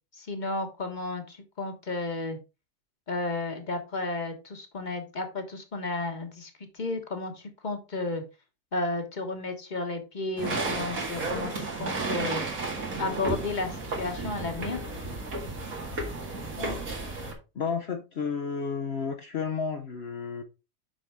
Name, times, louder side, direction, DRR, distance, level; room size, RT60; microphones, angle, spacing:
voice 1, 0.2-2.4 3.1-8.2 8.7-12.4 13.0-14.8, left 2 dB, 35° left, 1.3 m, -33 dB
sound 1, 10.4-17.3, right 2 dB, 80° right, 2.4 m, -33 dB
voice 2, 17.5-20.4, left 5 dB, 55° left, 0.9 m, -32 dB
6.5 x 5.8 x 3.5 m
omnidirectional pair, 1.4 m